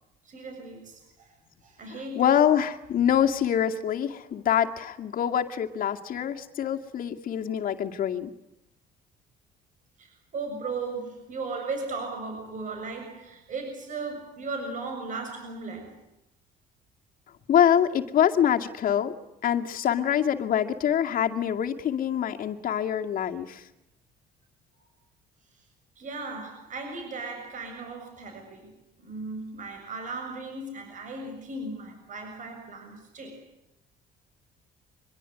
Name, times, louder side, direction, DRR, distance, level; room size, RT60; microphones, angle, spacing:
voice 1, 0.3-1.3 1.6-2.3 4.2-4.3 10.0-16.0 24.8-24.9 26.0-33.4, right 3 dB, 50° right, 4 dB, 7.2 m, -37 dB
voice 2, 2.2-8.3 17.5-19.1 19.4-23.6, left 9 dB, 55° left, 4 dB, 2.3 m, -25 dB
25.0 x 22.5 x 9.8 m, 0.86 s
cardioid pair, 110°, 17 cm